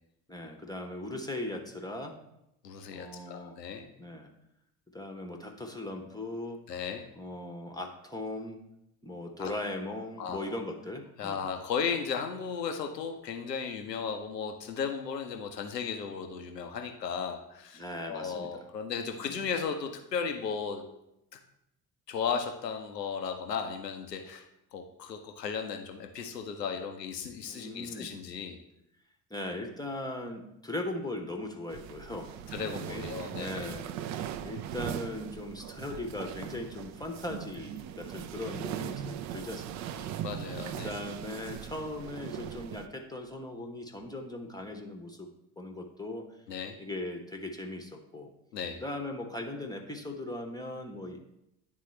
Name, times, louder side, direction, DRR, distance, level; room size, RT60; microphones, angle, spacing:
voice 1, 0.3-2.2 2.9-3.6 4.0-4.3 4.9-6.6 7.2-8.6 9.0-11.5 17.7-18.7 19.2-19.4 27.5-28.1 29.3-32.5 32.9-33.9 34.4-40.1 40.8-45.3 45.6-46.3 46.8-48.3 48.8-51.2, left 1 dB, 10° left, 2 dB, 0.8 m, -39 dB
voice 2, 2.6-3.9 6.7-7.1 9.4-9.5 10.2-10.5 11.2-20.8 21.3-21.4 22.1-24.5 24.7-28.6 32.5-33.7 40.2-40.9 46.5-46.8 48.5-48.8, left 6 dB, 85° left, 5 dB, 0.6 m, -35 dB
sound 1, 31.7-42.9, right 10 dB, 40° right, 0.4 m, -39 dB
10.0 x 3.7 x 3.1 m, 0.83 s
figure-of-eight pair, 50°, 48 cm